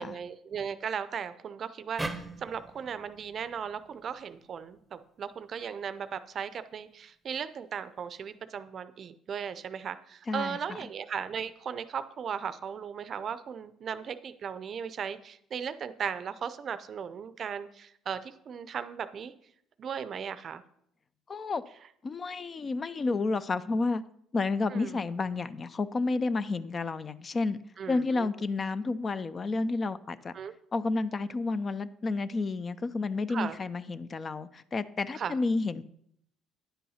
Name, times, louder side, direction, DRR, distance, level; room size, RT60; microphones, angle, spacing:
voice 1, 0.0-19.3 19.8-20.6 24.7-25.0 27.8-28.3 30.3-30.5 33.3-33.6 35.1-35.4, right 7 dB, 45° right, 13 dB, 0.5 m, -37 dB
sound 1, 2.0-5.2, right 2 dB, 10° right, 0.8 m, -41 dB
voice 2, 10.3-10.8 21.3-21.6 22.0-24.0 24.3-27.6 27.9-30.3 30.7-35.8, left 3 dB, 30° left, 15 dB, 0.4 m, -30 dB
9.8 x 5.6 x 5.6 m, 0.70 s
cardioid pair, 110°, 0 cm